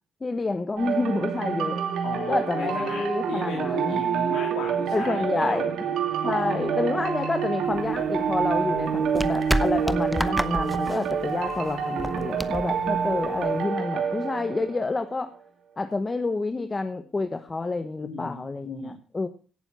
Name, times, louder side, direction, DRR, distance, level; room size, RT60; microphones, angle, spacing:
voice 1, 0.2-1.8 2.3-4.0 4.9-5.8 6.2-15.3 15.8-19.3, left 3 dB, 25° left, 9 dB, 1.1 m, -28 dB
sound 1, 0.8-15.2, right 7 dB, 75° right, 2.8 m, -27 dB
voice 2, 2.0-5.7 6.2-7.0 18.0-18.9, left 5 dB, 85° left, -1 dB, 2.8 m, -36 dB
sound 2, 7.7-13.6, equal, ahead, 0.8 m, -31 dB
17.0 x 7.2 x 5.4 m, 0.39 s
cardioid pair, 90°, 0 cm